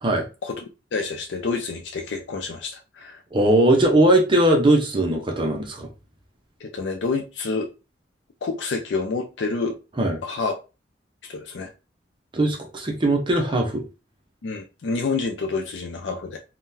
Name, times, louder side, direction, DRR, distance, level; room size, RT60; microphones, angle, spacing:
voice 1, 0.9-3.2 6.6-7.7 8.4-9.8 10.2-10.5 11.3-11.7 14.4-16.4, left 4 dB, 65° left, 3 dB, 0.4 m, -28 dB
voice 2, 3.3-5.9 10.0-10.2 12.3-13.8, right 1 dB, 25° right, 2 dB, 0.6 m, -19 dB
3.6 x 2.2 x 2.6 m, 0.30 s
head